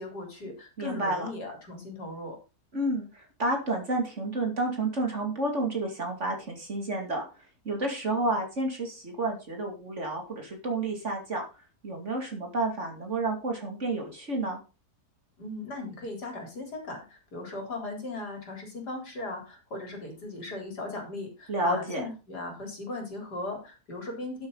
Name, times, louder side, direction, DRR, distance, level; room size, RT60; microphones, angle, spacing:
voice 1, 0.0-2.4 15.4-24.5, left 2 dB, 80° left, 2 dB, 4.6 m, -38 dB
voice 2, 0.8-1.3 2.7-7.2 7.6-11.4 11.8-14.6 21.5-22.0, right 2 dB, 45° right, 3 dB, 2.8 m, -30 dB
11.0 x 9.0 x 4.0 m, 0.30 s
omnidirectional pair, 1.7 m